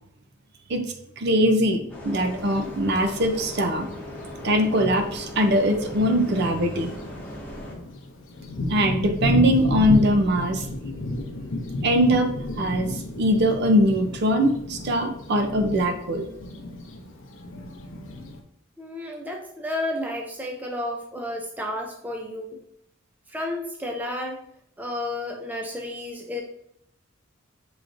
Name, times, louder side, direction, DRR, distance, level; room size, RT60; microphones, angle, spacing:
voice 1, 1.2-3.9 4.4-6.9 8.7-10.7 11.8-12.3 12.6-16.3, equal, 50° right, 6 dB, 0.6 m, -21 dB
Bus, 1.9-7.8, left 1 dB, 10° left, 0.8 m, -38 dB
Thunder, 2.4-2.5 3.5-3.6 4.2-4.3 4.6-18.4, left 1 dB, 65° left, 0.7 m, -32 dB
voice 2, 18.8-22.6 23.3-24.4 24.8-26.4, left 1 dB, 10° right, 1 dB, 0.4 m, -31 dB
6.3 x 3.0 x 2.5 m, 0.72 s
head